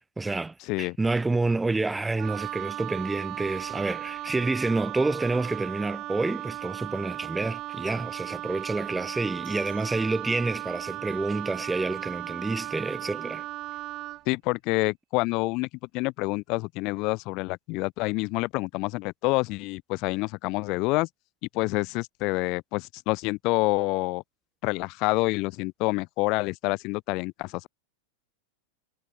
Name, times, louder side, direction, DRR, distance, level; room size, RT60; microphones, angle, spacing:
voice 1, 0.2-13.4, right 3 dB, 10° right, 0.7 m, -28 dB
Wind instrument woodwind instrument, 2.2-14.3, right 15 dB, 35° right, 0.3 m, -36 dB
sound 1, 9.4-14.3, right 20 dB, 50° right, 3.7 m, -63 dB
voice 2, 14.3-15.7 15.9-21.1 21.5-24.2 24.6-27.7, left 25 dB, 40° left, 0.6 m, -27 dB
figure-of-eight pair, 90°, 0 cm